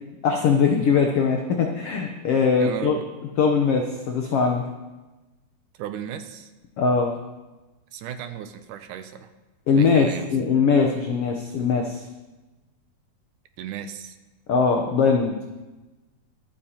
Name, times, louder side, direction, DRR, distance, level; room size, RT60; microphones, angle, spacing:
voice 1, 0.2-3.0 3.4-4.6 6.8-7.1 9.7-12.0 14.5-15.3, left 5 dB, 75° left, 2 dB, 1.3 m, -21 dB
voice 2, 2.6-3.0 5.7-6.5 7.9-9.3 9.7-10.3 13.6-14.2, right 9 dB, 80° right, 8 dB, 2.1 m, -35 dB
24.5 x 8.7 x 2.9 m, 1.1 s
omnidirectional pair, 3.8 m